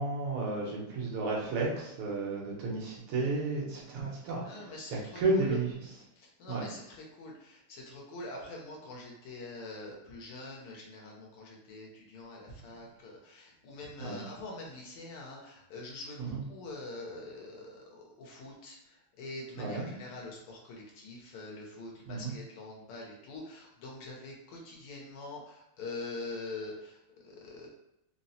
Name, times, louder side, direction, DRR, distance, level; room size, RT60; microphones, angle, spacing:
voice 1, 0.0-4.5 4.9-5.7 6.5-6.7 14.0-14.2 16.2-16.4 19.6-19.9 22.1-22.3, right 3 dB, 90° right, -3 dB, 1.8 m, -32 dB
voice 2, 4.5-5.6 6.2-27.7, left 2 dB, 85° left, -2 dB, 1.7 m, -44 dB
4.2 x 2.0 x 2.7 m, 0.83 s
omnidirectional pair, 2.3 m